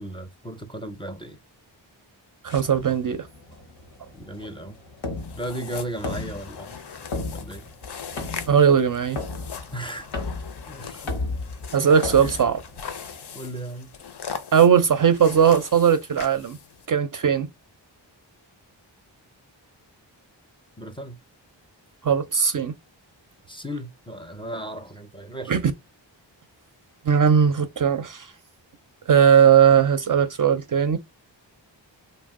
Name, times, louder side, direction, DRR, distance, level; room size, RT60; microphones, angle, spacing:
voice 1, 0.0-1.4 4.1-4.8 5.3-6.8 7.3-7.7 9.7-10.1 10.7-11.1 12.2-12.5 13.3-13.9 20.8-21.2 23.5-25.6, right 1 dB, 10° left, 0.5 m, -35 dB
voice 2, 2.4-3.3 8.5-9.2 11.7-12.6 14.5-16.6 16.9-17.5 22.0-22.7 25.5-25.6 27.0-28.3 29.1-31.0, right 7 dB, 45° right, 0.4 m, -18 dB
sound 1, 2.5-13.2, left 3 dB, 85° left, 0.9 m, -35 dB
sound 2, 5.2-16.9, left 6 dB, 60° left, 0.6 m, -40 dB
2.5 x 2.1 x 3.6 m
cardioid pair, 50°, 46 cm